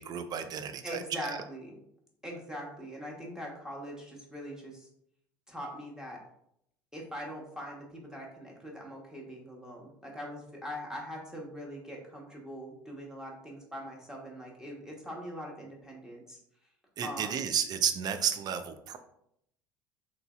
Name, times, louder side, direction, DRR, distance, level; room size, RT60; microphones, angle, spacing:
voice 1, 0.0-1.3 17.0-19.0, right 8 dB, 35° right, 9 dB, 0.4 m, -32 dB
voice 2, 0.8-1.7 2.2-4.9 5.5-6.2 6.9-16.4 17.0-17.5, equal, 5° right, -2 dB, 1.1 m, -42 dB
3.8 x 3.0 x 2.4 m, 0.75 s
figure-of-eight pair, 65°, 11 cm